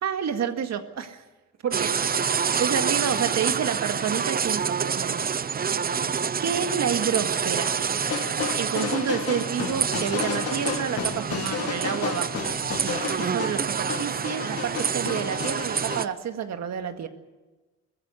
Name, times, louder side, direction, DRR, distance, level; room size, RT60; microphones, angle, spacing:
voice 1, 0.0-1.2 1.6-1.9 2.3-5.6 6.4-7.8 8.6-17.1, right 8 dB, 60° right, 7 dB, 1.9 m, -29 dB
sound 1, 1.7-16.0, right 6 dB, 30° right, 0.6 m, -27 dB
sound 2, 8.0-16.1, left 7 dB, 50° left, 1.9 m, -32 dB
21.5 x 15.0 x 8.4 m, 1.2 s
cardioid pair, 90°, 30 cm